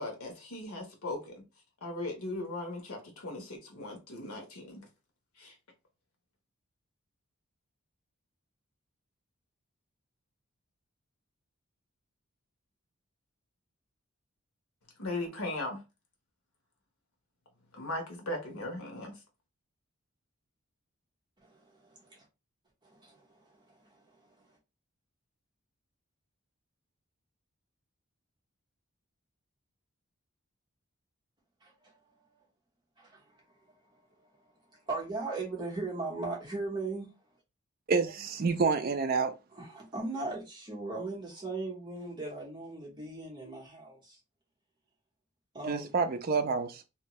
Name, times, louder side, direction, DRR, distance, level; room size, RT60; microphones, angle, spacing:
voice 1, 0.0-1.4 1.8-4.8 5.4-5.5 15.0-15.8 17.7-19.1, left 2 dB, 85° left, 1.0 m, -38 dB
voice 2, 21.4-22.2 22.8-24.3 31.6-32.4 33.0-33.4 33.8-34.3 34.7-37.1 39.5-44.2 45.5-46.0, right 3 dB, 20° right, 0.9 m, -39 dB
voice 3, 37.9-39.3 45.7-46.8, right 4 dB, 45° right, 0.4 m, -28 dB
2.6 x 2.2 x 2.9 m
head